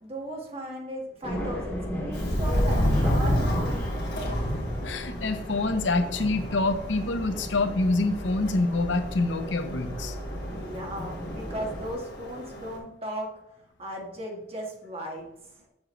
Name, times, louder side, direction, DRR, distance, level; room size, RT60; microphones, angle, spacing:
voice 1, 0.0-3.9 10.5-13.3 13.8-15.3, right 1 dB, 35° right, 0 dB, 1.7 m, -37 dB
sound 1, 1.2-11.9, equal, 15° left, 2.3 m, -36 dB
Subway metro underground, 2.1-12.8, equal, 60° left, 2.3 m, -30 dB
voice 2, 4.8-10.2, left 2 dB, 85° left, 9 dB, 0.8 m, -26 dB
7.3 x 6.4 x 3.2 m, 0.83 s
head